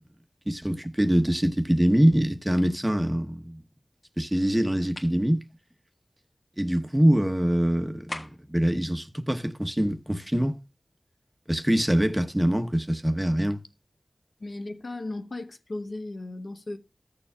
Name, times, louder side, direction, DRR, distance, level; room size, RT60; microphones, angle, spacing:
voice 1, 0.5-3.6 4.2-5.4 6.6-10.6 11.5-13.6, equal, 15° right, 1.0 m, -24 dB
sound 1, 5.0-5.2 8.1-8.6, left 1 dB, 50° left, 1.6 m, -38 dB
voice 2, 14.4-16.8, left 2 dB, 70° left, 0.9 m, -36 dB
15.0 x 6.9 x 2.3 m
wide cardioid pair, 50°, 0 cm